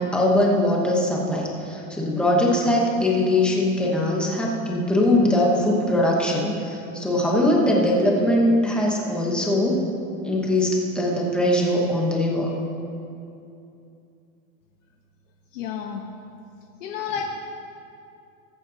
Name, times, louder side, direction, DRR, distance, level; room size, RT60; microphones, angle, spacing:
voice 1, 0.0-9.8 10.2-12.5, left 1 dB, ahead, -3 dB, 0.9 m, -21 dB
voice 2, 15.5-16.0 16.8-17.2, left 8 dB, 60° left, 1 dB, 1.1 m, -30 dB
21.5 x 8.1 x 2.8 m, 2.6 s
supercardioid pair, 170°, 43 cm